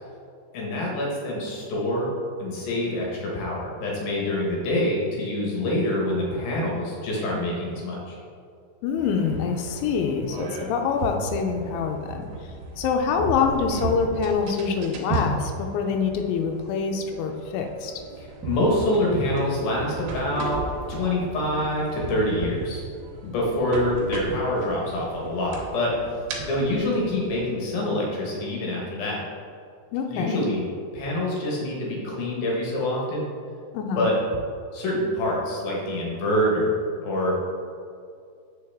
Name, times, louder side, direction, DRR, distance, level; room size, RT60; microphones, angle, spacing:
voice 1, 0.5-2.1 2.4-8.2 18.2-20.6 20.9-22.8 23.2-25.9 26.5-29.2 30.1-30.6 30.9-33.3 34.0-34.1 34.7-37.5, left 1 dB, 65° left, -3 dB, 2.7 m, -26 dB
voice 2, 8.8-12.3 12.8-17.9 29.9-30.5 33.7-34.1, left 6 dB, 90° left, 3 dB, 3.0 m, -25 dB
sound 1, 9.0-27.4, right 3 dB, 75° right, 2.8 m, -35 dB
7.8 x 6.2 x 3.5 m, 2.3 s
omnidirectional pair, 5.2 m